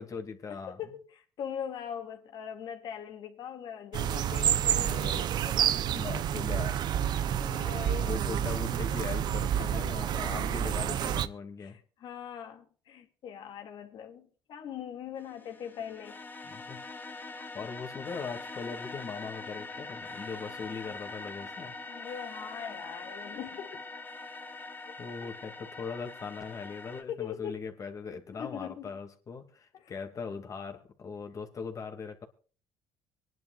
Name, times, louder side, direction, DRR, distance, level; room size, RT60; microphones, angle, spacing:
voice 1, 0.0-0.8 4.8-5.2 5.9-6.8 8.0-11.8 16.4-16.8 17.3-21.8 25.0-32.3, left 5 dB, 40° left, 2.7 m, -40 dB
voice 2, 0.8-5.8 7.0-8.2 9.6-9.9 11.6-16.2 16.7-16.8 21.8-23.8 24.9-25.0 25.2-25.3 27.0-27.6 28.3-28.9 29.7-29.9, left 8 dB, 65° left, 2.5 m, -41 dB
sound 1, 3.9-11.3, right 10 dB, 60° right, 0.8 m, -29 dB
sound 2, 15.2-27.0, left 3 dB, 25° left, 1.4 m, -43 dB
24.5 x 11.0 x 2.6 m
supercardioid pair, 90°, 8 cm